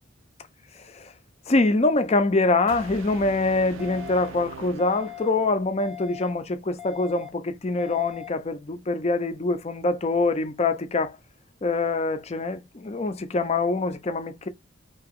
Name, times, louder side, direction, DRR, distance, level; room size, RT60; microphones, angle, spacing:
voice 1, 1.5-11.2 11.6-14.5, left 3 dB, 35° left, 0.5 m, -24 dB
sound 1, 2.7-5.7, right 7 dB, 85° right, 0.5 m, -42 dB
sound 2, 3.8-4.3 4.8-5.3 5.8-6.3 6.8-7.3 7.8-8.3, left 13 dB, 5° right, 0.7 m, -40 dB
2.9 x 2.8 x 3.6 m
head